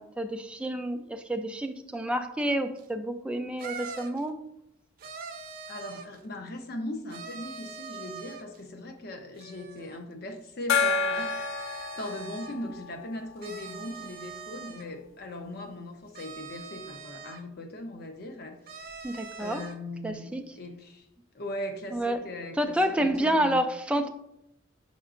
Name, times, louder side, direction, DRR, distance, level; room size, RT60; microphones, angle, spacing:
voice 1, 0.0-4.4 19.0-19.6 20.0-20.4 21.9-22.2 22.6-24.1, right 1 dB, 5° right, 5 dB, 0.4 m, -29 dB
sound 1, 2.8-2.9 3.6-4.2 5.0-6.2 7.1-8.6 9.4-10.0 11.0-12.6 13.4-14.9 16.1-17.4 18.6-19.8, right 5 dB, 45° right, 0.7 m, -43 dB
voice 2, 5.7-18.6 19.1-21.1 21.3-23.6, left 1 dB, 50° left, 4 dB, 0.8 m, -39 dB
Gong, 10.7-14.0, left 4 dB, 80° left, 0.4 m, -30 dB
7.8 x 5.3 x 2.5 m, 0.82 s
head